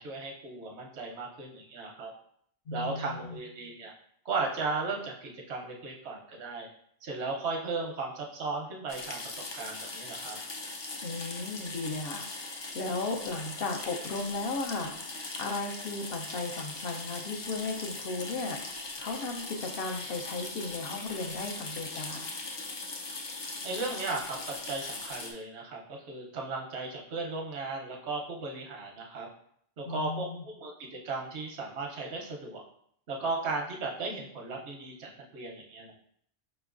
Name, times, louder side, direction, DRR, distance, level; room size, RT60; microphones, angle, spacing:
voice 1, 0.0-2.1 2.7-3.9 4.2-6.7 7.0-10.4 23.6-29.3 29.8-32.6 33.1-35.9, right 3 dB, 85° right, 1 dB, 1.0 m, -36 dB
voice 2, 2.7-3.4 11.0-22.3 29.9-30.4, left 3 dB, 65° left, 3 dB, 0.8 m, -36 dB
sound 1, 8.9-25.3, left 3 dB, 45° left, 0.3 m, -40 dB
5.0 x 3.0 x 2.4 m, 0.67 s
omnidirectional pair, 1.1 m